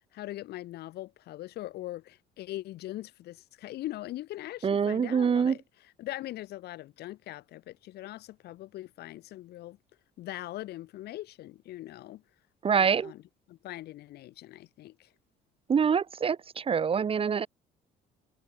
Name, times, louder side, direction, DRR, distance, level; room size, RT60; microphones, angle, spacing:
voice 1, 0.1-5.6 6.0-9.8 10.2-12.2 12.7-13.2 13.5-15.1, left 15 dB, 75° left, 1.9 m, -41 dB
voice 2, 4.6-5.6 12.6-13.1 15.7-17.5, right 6 dB, 35° right, 1.1 m, -25 dB
cardioid pair, 110°, 17 cm